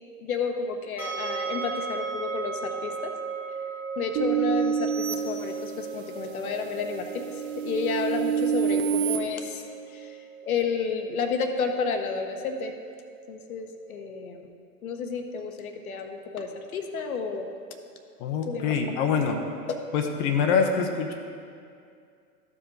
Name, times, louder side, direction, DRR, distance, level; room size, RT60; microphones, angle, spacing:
voice 1, 0.2-3.1 4.0-7.2 7.6-9.6 9.9-10.2 10.4-12.7 13.3-14.4 14.8-17.5 18.4-19.0 19.7-19.8, left 5 dB, 65° left, 5 dB, 1.0 m, -31 dB
sound 1, 1.0-14.0, right 5 dB, 5° right, 0.3 m, -38 dB
sound 2, 4.2-6.1 6.6-9.2, right 8 dB, 45° right, 0.8 m, -28 dB
voice 2, 18.2-19.4 19.9-21.1, left 6 dB, 35° left, 3 dB, 0.7 m, -25 dB
13.5 x 4.8 x 3.8 m, 2.3 s
hypercardioid pair, 105°, 46 cm